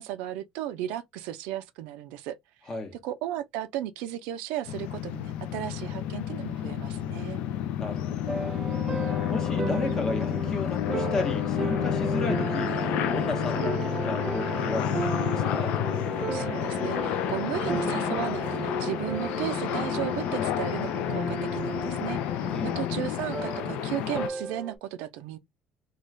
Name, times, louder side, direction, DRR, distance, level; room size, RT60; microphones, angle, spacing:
voice 1, 0.0-2.4 3.0-7.4 16.3-25.4, right 12 dB, 90° right, 0.4 m, -35 dB
sound 1, 4.7-24.3, left 11 dB, 70° left, 0.4 m, -30 dB
voice 2, 7.8-8.4 9.3-15.8 22.5-22.8, left 3 dB, 30° left, 0.8 m, -34 dB
sound 2, 8.3-24.8, right 4 dB, 20° right, 0.5 m, -35 dB
2.4 x 2.2 x 3.1 m
cardioid pair, 150°, 2 cm